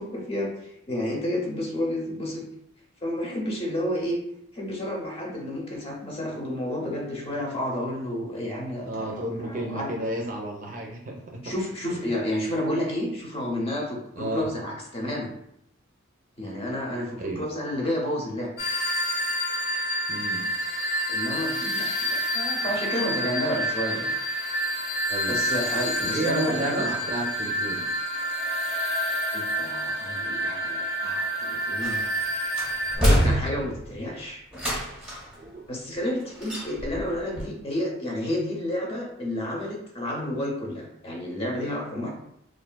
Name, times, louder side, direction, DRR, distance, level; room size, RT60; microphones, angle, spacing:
voice 1, 0.0-2.4 3.0-4.2 4.5-9.9 11.4-15.3 16.4-18.5 21.1-21.9 22.3-24.1 25.3-26.9 29.3-32.0 33.0-34.4 35.7-42.1, left 1 dB, 30° left, -2 dB, 0.7 m, -30 dB
voice 2, 8.8-11.5 11.9-12.0 14.2-14.5 17.2-17.4 20.1-20.5 25.1-25.4 26.0-27.8 35.4-35.6, right 1 dB, 40° right, 1 dB, 0.4 m, -32 dB
sound 1, 18.6-33.0, equal, 60° left, 0.8 m, -28 dB
sound 2, 31.8-32.2 32.6-33.9 34.5-35.3 36.4-37.1 37.4-37.5, equal, 5° right, 0.8 m, -25 dB
3.4 x 2.4 x 2.2 m, 0.76 s
head